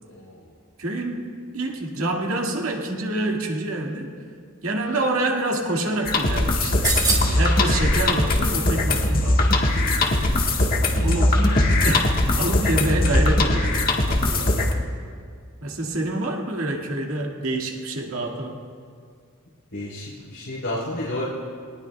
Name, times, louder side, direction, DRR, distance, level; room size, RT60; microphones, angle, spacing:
voice 1, 0.8-4.1 4.6-10.4 11.0-14.8 15.6-18.6, right 1 dB, 80° right, 0 dB, 2.1 m, -27 dB
sound 1, 6.1-14.7, left 2 dB, 45° left, 1.5 m, -20 dB
sound 2, 6.8-7.5 9.0-10.8 11.0-11.1, right 3 dB, 20° right, 2.3 m, -28 dB
voice 2, 19.7-21.2, left 1 dB, 80° left, -8 dB, 4.0 m, -31 dB
22.5 x 19.5 x 2.4 m, 2.1 s
head